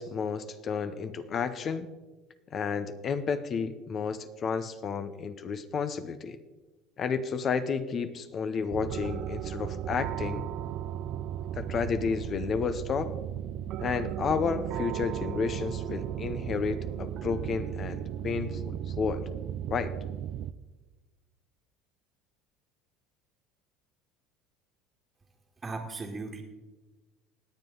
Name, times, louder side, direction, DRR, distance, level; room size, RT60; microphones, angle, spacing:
voice 1, 0.0-1.9 2.5-6.4 7.0-10.5 11.5-13.1 13.8-19.2 19.7-19.9, left 6 dB, 40° left, 11 dB, 0.8 m, -31 dB
sound 1, 8.7-20.5, right 11 dB, 60° right, 0.4 m, -35 dB
voice 2, 25.6-26.4, right 3 dB, 20° right, -2 dB, 1.7 m, -37 dB
19.0 x 7.8 x 3.9 m, 1.2 s
supercardioid pair, 100°, 0 cm